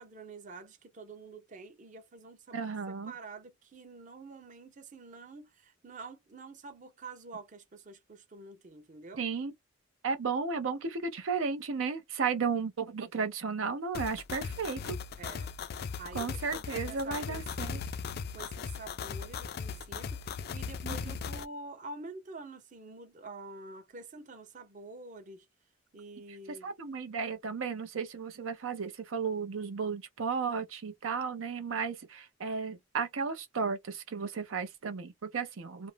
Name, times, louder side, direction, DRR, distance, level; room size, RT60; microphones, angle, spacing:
voice 1, 0.0-2.7 3.1-9.2 15.2-15.5 16.0-18.0 18.3-25.5 25.9-26.7, right 3 dB, 40° right, 0.6 m, -47 dB
voice 2, 2.5-3.1 9.2-9.5 10.0-15.0 16.1-17.8 20.8-21.0 26.6-35.9, right 5 dB, 85° right, 0.6 m, -34 dB
sound 1, 13.9-21.4, left 6 dB, 50° left, 0.3 m, -38 dB
2.5 x 2.0 x 3.2 m
head